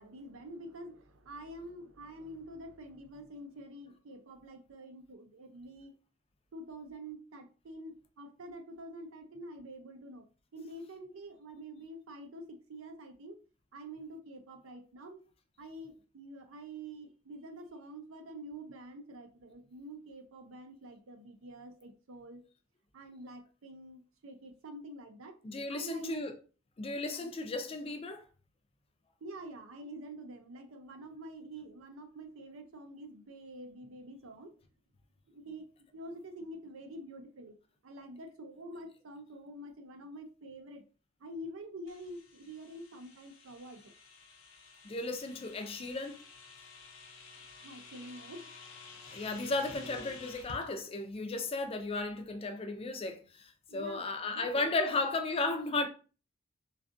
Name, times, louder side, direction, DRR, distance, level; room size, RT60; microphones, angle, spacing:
voice 1, 0.0-5.9 6.5-10.3 10.5-13.4 13.7-15.2 15.6-22.4 22.9-25.4 25.7-26.2 27.1-27.3 29.2-34.5 35.3-35.7 35.9-37.6 37.8-40.8 41.2-43.9 47.6-48.5 53.7-55.0, right 1 dB, 85° right, 0.5 m, -47 dB
voice 2, 25.4-26.3 26.8-28.2 44.8-46.2 49.1-55.9, left 3 dB, 30° left, 0.4 m, -35 dB
sound 1, 41.9-50.6, left 3 dB, 75° left, 0.6 m, -52 dB
2.5 x 2.4 x 2.5 m
head